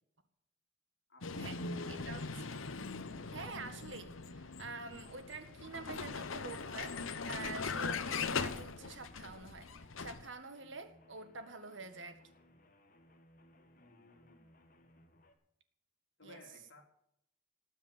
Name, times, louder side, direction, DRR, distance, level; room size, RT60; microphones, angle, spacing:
voice 1, 1.1-2.0 13.7-14.5 16.2-16.8, left 2 dB, 60° left, 1 dB, 4.0 m, -56 dB
Vehicle, 1.2-10.3, left 4 dB, 75° left, 1.0 m, -40 dB
voice 2, 1.9-2.6 3.3-12.3 16.2-16.4, right 4 dB, 65° right, 9 dB, 1.9 m, -47 dB
sound 1, 5.9-15.3, left 1 dB, 40° left, 2.1 m, -64 dB
19.0 x 7.4 x 9.2 m, 0.74 s
head